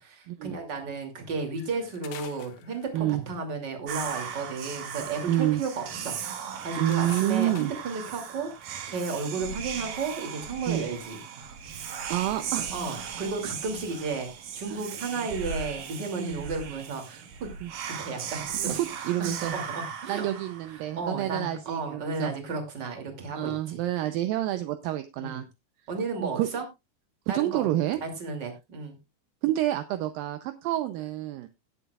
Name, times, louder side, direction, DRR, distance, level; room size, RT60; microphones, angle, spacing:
voice 1, 0.0-11.5 12.7-17.2 18.0-18.7 19.0-20.3 20.7-23.8 25.2-25.4 25.9-26.7 27.3-27.7 28.0-29.0, right 4 dB, 30° right, 4 dB, 2.6 m, -34 dB
sound 1, 1.6-3.3 4.7-5.2 5.5-5.6 5.9-6.0 6.4-8.0 9.0-9.2 9.7-10.1 10.5-10.7, left 11 dB, 70° left, 2.8 m, -48 dB
Whispering, 3.9-21.0, right 7 dB, 60° right, 2.9 m, -37 dB
voice 2, 5.3-5.6 6.8-7.7 10.7-10.9 12.1-12.7 16.2-16.5 17.6-17.7 18.5-19.6 20.1-22.3 23.4-25.5 26.2-26.5 27.3-28.0 29.4-31.5, right 14 dB, 80° right, 9 dB, 2.1 m, -28 dB
18.5 x 8.2 x 2.4 m, 0.24 s
omnidirectional pair, 4.8 m